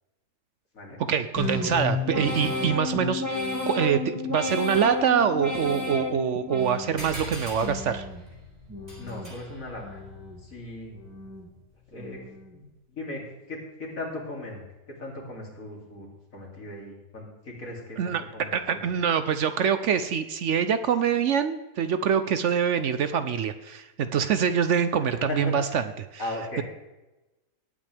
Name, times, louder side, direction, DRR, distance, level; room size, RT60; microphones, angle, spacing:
voice 1, 1.1-8.1 18.0-26.1, right 7 dB, 65° right, 11 dB, 0.9 m, -25 dB
sound 1, 1.4-7.2 7.6-8.2 8.7-9.3 9.8-10.4 10.9-11.5 12.0-12.5, left 2 dB, 10° right, 1.9 m, -32 dB
sound 2, 7.0-11.9, right 1 dB, 45° right, 4.0 m, -42 dB
voice 2, 9.0-10.0 10.4-10.9 11.9-12.2 12.5-14.6 14.9-18.9 25.3-25.8 26.2-26.6, left 2 dB, 70° left, -2 dB, 3.3 m, -38 dB
18.5 x 8.7 x 3.4 m, 1.1 s
omnidirectional pair, 1.5 m